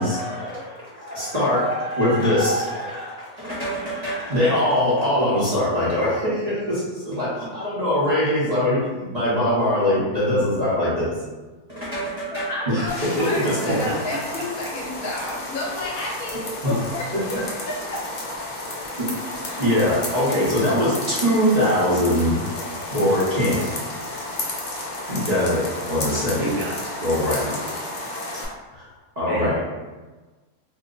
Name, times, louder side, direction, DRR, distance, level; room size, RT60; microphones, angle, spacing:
voice 1, 0.0-11.1 11.7-12.9 13.2-13.9 16.6-16.7 19.0-19.1 19.3-22.3 22.9-23.7 25.1-26.5 27.0-27.8 28.7-28.8 29.2-29.6, left 1 dB, 35° right, -9 dB, 0.8 m, -22 dB
voice 2, 12.3-17.1 17.6-18.0, left 2 dB, 65° left, -3 dB, 1.1 m, -31 dB
sound 1, 12.9-28.5, left 2 dB, 90° left, 0.4 m, -32 dB
voice 3, 13.7-14.4 26.3-26.9 29.3-29.6, right 2 dB, 65° right, -4 dB, 1.0 m, -30 dB
2.8 x 2.2 x 3.7 m, 1.2 s
omnidirectional pair, 1.7 m